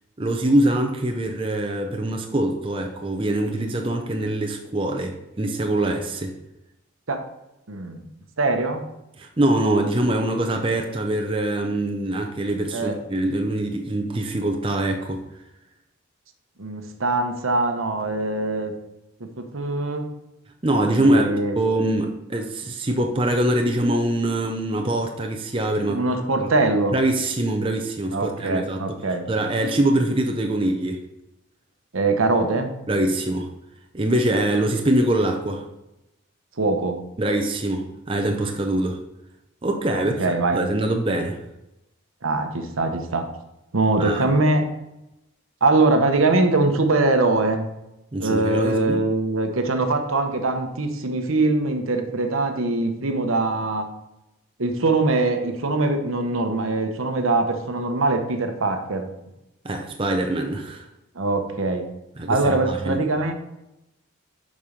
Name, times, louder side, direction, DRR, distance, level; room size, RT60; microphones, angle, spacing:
voice 1, 0.2-6.4 9.2-15.2 20.6-21.3 21.6-26.0 26.4-26.5 26.9-29.0 29.3-31.0 32.9-33.5 33.9-35.6 37.2-39.0 39.6-41.4 44.0-44.3 48.1-49.0 59.6-60.9 62.2-63.0, right 1 dB, 25° right, 3 dB, 0.6 m, -23 dB
voice 2, 7.7-8.0 8.4-8.8 12.7-13.0 16.6-18.7 19.2-20.1 21.0-21.6 25.9-26.9 28.1-29.2 31.9-32.7 36.6-37.0 39.9-40.6 42.2-43.3 43.7-44.6 45.6-47.7 48.2-53.9 54.6-59.1 61.1-61.9 62.3-63.3, right 2 dB, 75° right, 6 dB, 1.0 m, -22 dB
7.1 x 5.4 x 5.1 m, 0.91 s
head